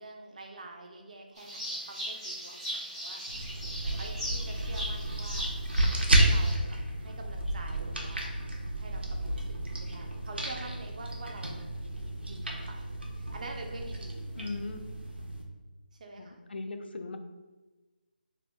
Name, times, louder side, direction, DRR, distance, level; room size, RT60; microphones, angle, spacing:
voice 1, 0.0-3.2 3.8-5.5 6.1-8.4 8.8-11.6 12.2-12.9 13.2-14.3 16.0-16.4, right 2 dB, 45° right, 2 dB, 0.5 m, -46 dB
sound 1, 1.4-6.5, equal, 5° right, 0.6 m, -38 dB
sound 2, 3.3-15.4, right 1 dB, 90° right, 0.6 m, -31 dB
voice 2, 14.3-14.8 16.2-17.2, left 3 dB, 80° left, 6 dB, 0.4 m, -38 dB
2.7 x 2.0 x 3.4 m, 1.2 s
figure-of-eight pair, 160°, 6 cm